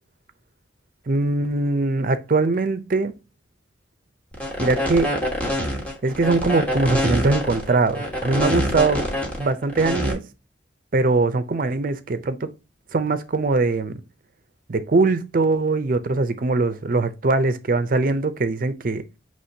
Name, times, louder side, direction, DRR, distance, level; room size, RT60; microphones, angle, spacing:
voice 1, 1.1-3.1 4.6-5.2 6.0-9.1 9.4-10.2 10.9-12.5 12.9-14.0 14.7-19.0, right 3 dB, 50° right, 0.5 m, -21 dB
sound 1, 4.3-10.1, equal, 10° left, 1.1 m, -25 dB
6.0 x 3.0 x 2.7 m
head